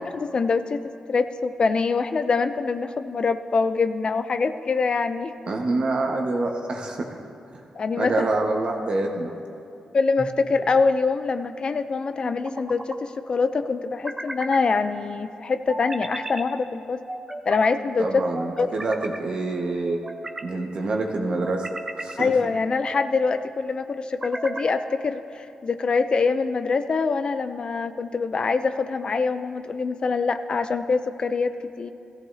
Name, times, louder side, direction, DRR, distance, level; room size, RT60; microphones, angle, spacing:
voice 1, 0.1-5.3 7.7-8.2 9.9-17.0 17.5-18.2 18.6-18.7 22.2-31.9, left 4 dB, 50° left, 10 dB, 0.5 m, -24 dB
voice 2, 5.5-7.1 8.0-9.3 18.0-20.0 20.4-21.6 21.9-22.3, right 2 dB, 55° right, 1 dB, 1.4 m, -26 dB
sound 1, 10.2-10.8 12.2-13.0 13.8-14.6 15.7-16.5 17.1-17.7 18.3-19.2 19.8-20.5 21.2-22.2 22.7-23.2 24.0-24.8, right 1 dB, 25° right, 0.8 m, -36 dB
16.5 x 14.0 x 2.8 m, 2.6 s
cardioid pair, 75°, 2 cm